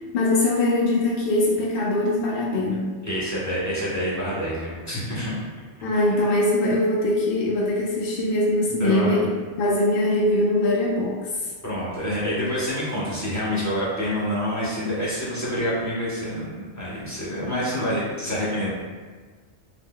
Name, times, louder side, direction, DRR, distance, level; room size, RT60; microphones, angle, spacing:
voice 1, 0.1-2.9 5.8-9.3 9.6-11.3, left 1 dB, 60° left, -5 dB, 0.7 m, -22 dB
voice 2, 3.0-5.3 5.9-6.3 8.8-9.3 11.6-18.7, equal, 15° left, -9 dB, 0.8 m, -27 dB
2.8 x 2.0 x 3.7 m, 1.4 s
omnidirectional pair, 1.2 m